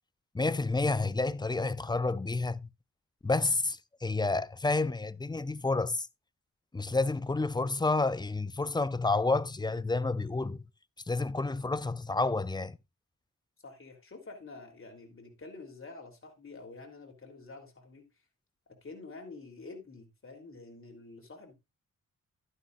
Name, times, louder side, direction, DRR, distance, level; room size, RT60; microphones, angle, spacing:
voice 1, 0.3-2.7 3.2-6.1 6.7-10.6 11.1-12.8, left 3 dB, 15° left, 0.5 m, -30 dB
voice 2, 13.6-18.0 18.8-21.5, left 3 dB, 40° left, 3.4 m, -48 dB
11.5 x 9.8 x 2.5 m
wide cardioid pair, 90°, 32 cm